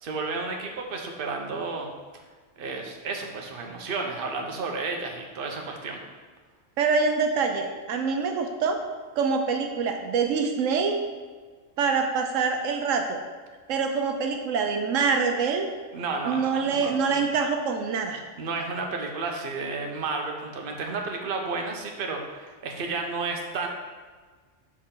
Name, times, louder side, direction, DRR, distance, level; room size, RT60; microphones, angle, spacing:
voice 1, 0.0-1.9 2.6-6.0 15.9-17.2 18.4-23.7, right 3 dB, 50° right, 2 dB, 0.9 m, -32 dB
voice 2, 6.8-8.8 9.2-11.0 11.8-13.2 13.7-15.7 16.2-18.2, right 5 dB, 80° right, 4 dB, 1.0 m, -25 dB
6.4 x 5.5 x 3.7 m, 1.4 s
omnidirectional pair, 1.3 m